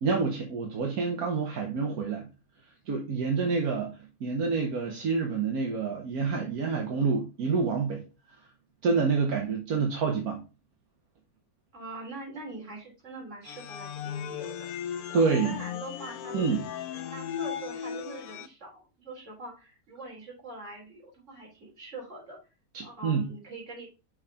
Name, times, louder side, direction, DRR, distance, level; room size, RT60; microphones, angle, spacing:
voice 1, 0.0-2.3 2.9-3.9 4.2-8.0 8.8-10.4 15.1-15.6 16.3-16.6 22.7-23.2, right 5 dB, 85° right, 1.6 m, -27 dB
voice 2, 11.7-14.5 15.1-16.5 16.9-22.4 22.8-23.9, right 2 dB, 55° right, 3.6 m, -43 dB
sound 1, 13.4-18.5, left 8 dB, 85° left, 1.1 m, -36 dB
6.3 x 4.9 x 3.6 m
omnidirectional pair, 1.5 m